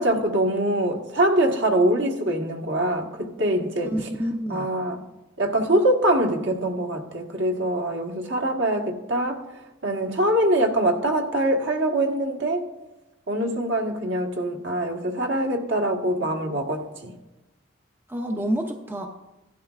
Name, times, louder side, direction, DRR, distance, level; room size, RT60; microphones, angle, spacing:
voice 1, 0.0-4.1 4.5-5.0 5.4-9.4 9.8-12.7 13.3-17.1, right 1 dB, 60° right, 1 dB, 1.5 m, -23 dB
voice 2, 3.9-4.7 18.1-19.1, equal, 10° right, 3 dB, 0.6 m, -28 dB
16.0 x 12.0 x 2.5 m, 1.0 s
head